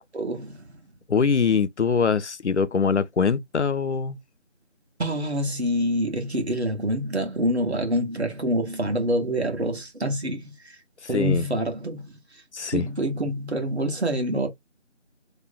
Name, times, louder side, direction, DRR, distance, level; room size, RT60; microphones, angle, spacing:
voice 1, 0.1-0.7 5.0-10.8 11.1-12.1 12.7-14.5, equal, 60° right, 1.3 m, -26 dB
voice 2, 1.1-4.2 11.1-11.4 12.5-12.9, left 5 dB, 65° left, 0.5 m, -23 dB
3.0 x 2.0 x 3.8 m
figure-of-eight pair, 170°, 37 cm